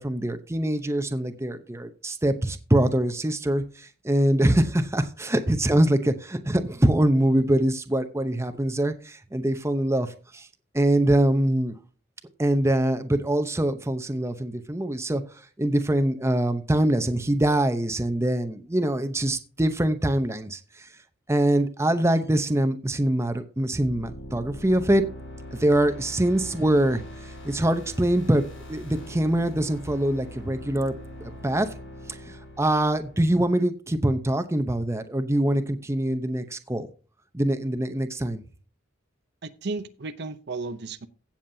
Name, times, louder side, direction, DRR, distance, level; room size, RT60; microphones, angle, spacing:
voice 1, 0.0-10.5 10.7-11.7 12.4-15.2 15.6-20.9 21.3-25.0 25.5-28.4 28.7-30.9 31.2-31.7 32.1-36.9 37.3-38.4, right 1 dB, 15° right, 0.7 m, -24 dB
sound 1, 23.8-33.6, equal, 80° left, 5.8 m, -42 dB
voice 2, 39.4-41.1, right 3 dB, 55° right, 0.7 m, -34 dB
16.5 x 7.2 x 2.7 m
head